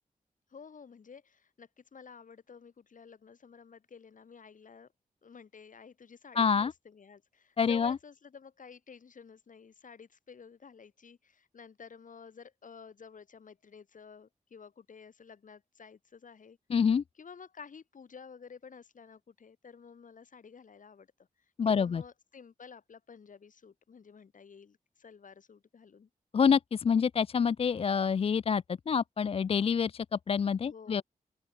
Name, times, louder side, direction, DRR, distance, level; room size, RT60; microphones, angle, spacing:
voice 1, 0.5-4.9 5.2-16.6 17.1-21.1 21.6-26.1 30.6-31.0, left 6 dB, 65° left, 6.4 m, -52 dB
voice 2, 6.4-6.7 7.6-8.0 16.7-17.0 21.6-22.0 26.3-31.0, left 6 dB, 40° left, 0.4 m, -27 dB
open air
wide cardioid pair, 120°, 14 cm